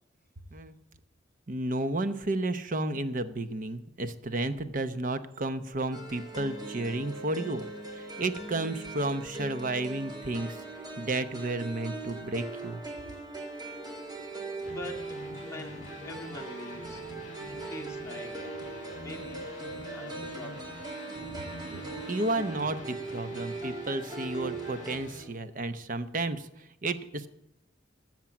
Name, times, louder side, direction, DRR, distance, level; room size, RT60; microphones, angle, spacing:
voice 1, 1.5-7.6 7.9-10.6 11.0-12.8 21.7-27.3, right 2 dB, 45° right, 11 dB, 0.8 m, -32 dB
sound 1, 5.9-25.0, right 3 dB, 20° right, 1.9 m, -40 dB
voice 2, 13.8-14.1 14.7-15.0 15.4-17.0 17.5-18.3 19.0-19.4 19.9-20.7, left 1 dB, 15° left, -1 dB, 2.0 m, -44 dB
sound 2, 14.6-25.2, left 1 dB, 40° left, 2.4 m, -46 dB
13.5 x 7.5 x 7.3 m, 0.87 s
head